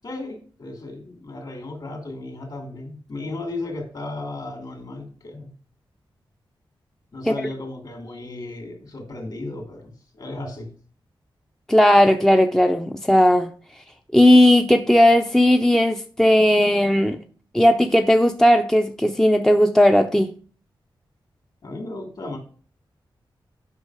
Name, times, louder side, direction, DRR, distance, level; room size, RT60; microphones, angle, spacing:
voice 1, 0.0-5.5 7.1-10.7 21.6-22.4, left 2 dB, 50° left, 2.8 m, -35 dB
voice 2, 11.7-13.5 14.1-17.2 17.5-20.3, left 1 dB, 5° left, 0.5 m, -16 dB
8.4 x 5.7 x 4.8 m
wide cardioid pair, 150°, 9 cm